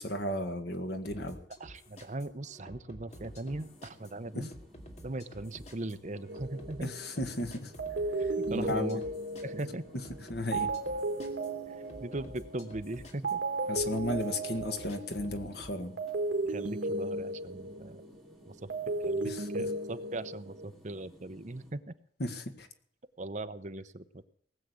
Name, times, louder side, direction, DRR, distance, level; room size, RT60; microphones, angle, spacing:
voice 1, 0.0-1.4 4.4-4.5 6.8-7.7 8.2-9.0 10.3-10.7 13.7-16.0 19.2-19.5 22.2-22.7, left 1 dB, 60° left, 7 dB, 1.9 m, -34 dB
sound 1, 1.0-15.7, equal, 40° left, 2.4 m, -51 dB
voice 2, 1.6-4.5 5.0-6.9 8.2-9.0 9.4-9.8 11.7-13.4 16.5-18.0 18.5-21.9 23.2-24.2, right 2 dB, 40° right, 11 dB, 0.8 m, -40 dB
sound 2, 3.1-21.7, equal, ahead, 3.4 m, -58 dB
sound 3, 6.3-7.3 7.8-12.9 13.2-18.2 18.5-20.7, right 2 dB, 75° right, 1.8 m, -35 dB
19.0 x 7.6 x 8.2 m, 0.62 s
head